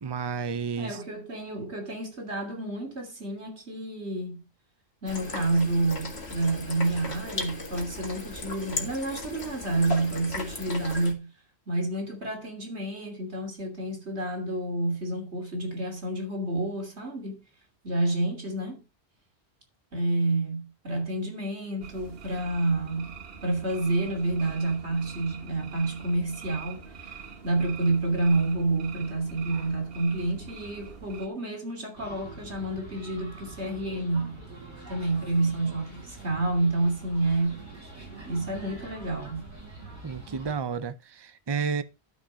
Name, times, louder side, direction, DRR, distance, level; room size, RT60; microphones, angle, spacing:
voice 1, 0.0-1.0 40.0-41.8, right 6 dB, 25° right, 0.7 m, -31 dB
voice 2, 0.8-4.5 5.0-11.3 11.7-17.4 17.8-18.8 19.9-23.1 23.4-34.4 34.9-37.6 38.3-39.4, right 2 dB, 80° right, 3.2 m, -29 dB
sound 1, 5.1-11.1, left 2 dB, 70° left, 2.3 m, -37 dB
sound 2, 21.8-31.3, right 6 dB, 60° right, 1.4 m, -44 dB
sound 3, 31.9-40.5, right 2 dB, 45° right, 7.2 m, -45 dB
12.5 x 5.3 x 5.0 m
omnidirectional pair, 1.1 m